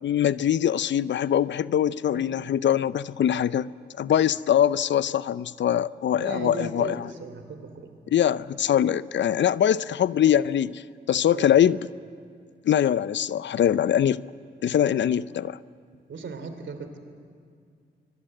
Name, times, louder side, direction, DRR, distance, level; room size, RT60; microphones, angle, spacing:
voice 1, 0.0-3.7 4.0-7.0 8.1-10.8 11.1-11.8 12.6-14.2 14.6-15.6, left 10 dB, 65° left, 19 dB, 0.5 m, -23 dB
voice 2, 6.2-7.9 11.3-11.5 16.1-17.0, right 4 dB, 70° right, 8 dB, 3.0 m, -37 dB
25.0 x 22.5 x 7.8 m, 2.2 s
supercardioid pair, 40°, 20 cm